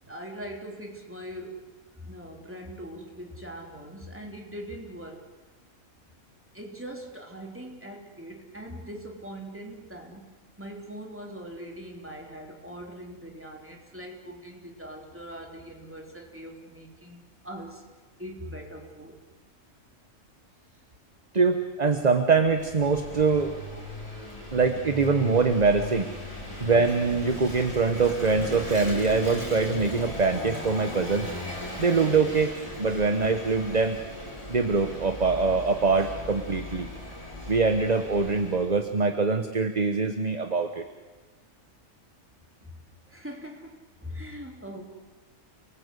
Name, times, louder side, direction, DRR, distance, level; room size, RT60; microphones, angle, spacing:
voice 1, 0.1-1.6 2.0-5.2 6.5-10.3 10.6-17.2 17.4-17.8 18.2-19.1 42.6-42.7 43.1-44.8, equal, 10° right, 1 dB, 3.4 m, -41 dB
voice 2, 21.3-23.5 24.5-26.1 26.6-31.3 31.8-34.0 34.5-36.9 37.5-40.8, right 4 dB, 30° right, 7 dB, 1.2 m, -24 dB
Vehicle / Engine, 22.4-38.8, left 1 dB, 25° left, 5.7 m, -38 dB
29.0 x 19.5 x 8.3 m, 1.3 s
omnidirectional pair, 1.5 m